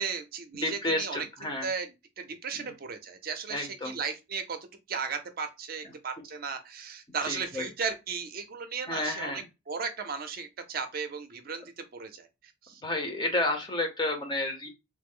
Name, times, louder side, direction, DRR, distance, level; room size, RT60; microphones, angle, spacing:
voice 1, 0.0-1.3 1.6-1.9 2.2-4.6 4.9-12.3 12.6-12.8, right 5 dB, 45° right, 0.5 m, -35 dB
voice 2, 0.5-1.7 2.5-2.7 3.5-4.0 5.8-5.9 7.2-7.7 8.9-9.4 12.8-14.7, left 2 dB, 20° left, 0.6 m, -31 dB
3.1 x 2.0 x 3.5 m
head